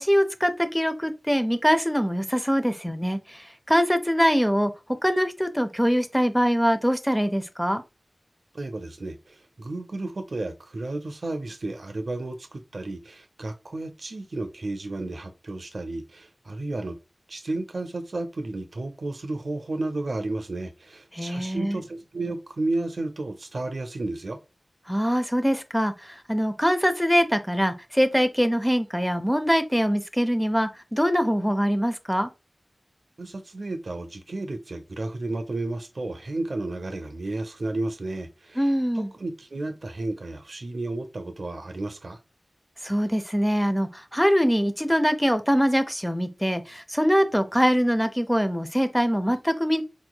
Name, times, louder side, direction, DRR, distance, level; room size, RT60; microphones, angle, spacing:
voice 1, 0.0-4.7 5.0-7.8 21.1-21.8 24.9-32.3 38.6-39.1 42.8-49.8, equal, 5° left, 0.4 m, -23 dB
voice 2, 8.5-17.0 17.3-24.4 33.2-38.7 38.9-42.2, right 2 dB, 70° right, 0.6 m, -32 dB
4.3 x 3.0 x 2.2 m
wide cardioid pair, 75°, 0 cm